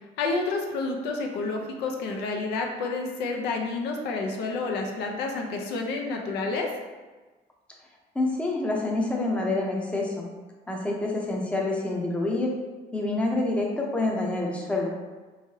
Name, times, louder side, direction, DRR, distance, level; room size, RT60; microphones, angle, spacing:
voice 1, 0.2-6.7, left 3 dB, 85° left, 2 dB, 0.5 m, -29 dB
voice 2, 8.1-10.2 10.7-12.5 12.9-14.9, left 2 dB, 5° left, -2 dB, 0.6 m, -27 dB
3.5 x 3.1 x 2.8 m, 1.3 s
cardioid pair, 110°, 17 cm